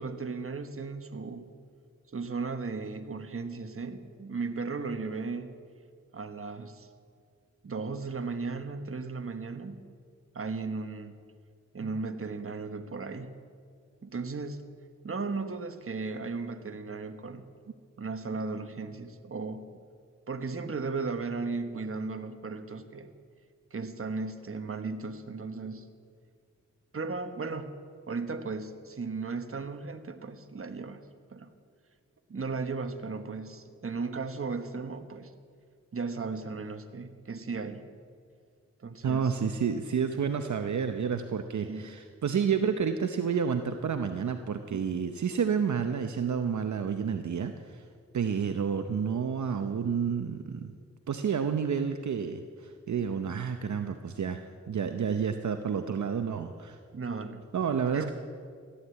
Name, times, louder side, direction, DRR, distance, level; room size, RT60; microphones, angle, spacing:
voice 1, 0.0-1.5 2.1-5.5 6.1-6.9 7.6-9.8 10.3-11.1 11.7-13.3 14.0-14.6 15.0-17.4 18.0-19.7 20.3-23.1 23.7-25.9 26.9-27.7 28.1-31.0 31.3-31.5 32.3-35.3 35.9-37.9 38.8-39.5 41.6-41.9 56.9-57.5 57.9-58.1, right 4 dB, 45° right, 8 dB, 1.3 m, -36 dB
voice 2, 39.0-47.8 48.1-50.7 51.1-56.8 57.5-58.1, right 6 dB, 70° right, 7 dB, 0.8 m, -30 dB
14.5 x 11.5 x 8.2 m, 2.1 s
cardioid pair, 60°, 30 cm